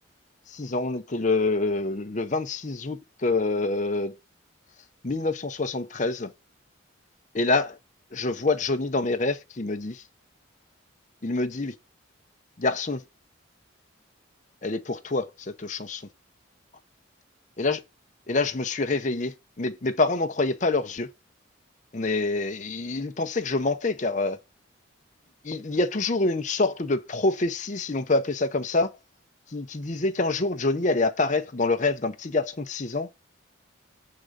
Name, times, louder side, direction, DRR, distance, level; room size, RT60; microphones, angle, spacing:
voice 1, 0.5-4.1 5.0-6.3 7.3-7.8 8.1-10.0 11.2-11.7 12.6-13.0 14.6-16.0 17.6-17.8 18.3-21.1 21.9-24.4 25.4-28.9 29.5-33.1, left 3 dB, 35° left, 0.7 m, -26 dB
7.6 x 3.7 x 6.6 m
head